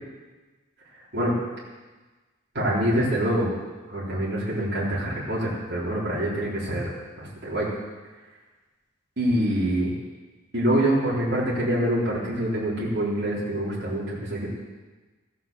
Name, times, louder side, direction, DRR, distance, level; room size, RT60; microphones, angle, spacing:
voice 1, 2.5-3.5 3.9-6.9 7.2-7.7 9.2-9.9 10.5-14.5, right 1 dB, 55° right, -7 dB, 3.8 m, -25 dB
15.0 x 9.3 x 7.5 m, 1.3 s
head